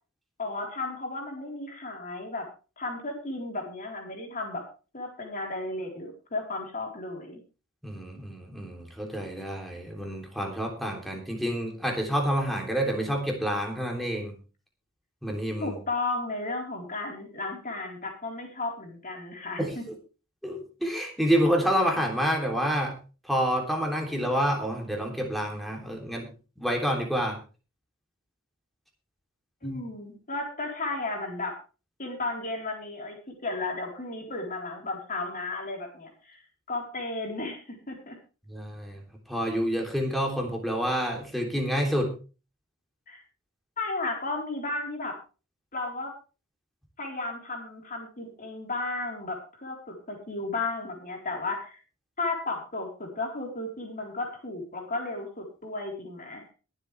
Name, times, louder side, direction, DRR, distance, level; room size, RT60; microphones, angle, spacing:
voice 1, 0.4-2.5 2.8-4.6 4.9-7.4 15.6-19.8 29.6-31.6 32.0-36.4 36.7-38.2 43.1-43.2 43.8-45.1 45.7-46.1 47.0-51.8 52.2-56.5, left 2 dB, 40° left, 1 dB, 4.2 m, -34 dB
voice 2, 7.8-14.4 15.2-15.8 19.6-19.8 20.4-22.9 23.3-26.3 26.6-27.4 29.6-29.8 38.5-42.1, equal, ahead, 1 dB, 3.2 m, -28 dB
22.0 x 8.1 x 3.4 m, 0.34 s
head